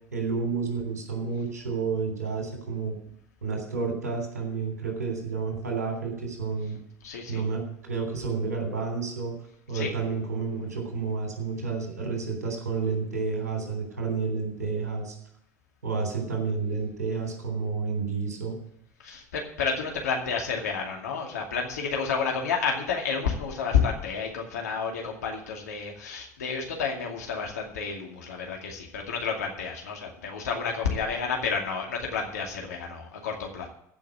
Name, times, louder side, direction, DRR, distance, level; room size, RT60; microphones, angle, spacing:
voice 1, 0.1-2.9 3.4-6.8 7.3-9.3 9.7-15.1 15.8-18.6, right 4 dB, 85° right, 2 dB, 3.4 m, -30 dB
voice 2, 7.0-7.4 9.7-9.9 19.0-33.7, left 6 dB, 80° left, 1 dB, 2.4 m, -30 dB
15.0 x 6.0 x 7.7 m, 0.71 s
figure-of-eight pair, 65°, 9 cm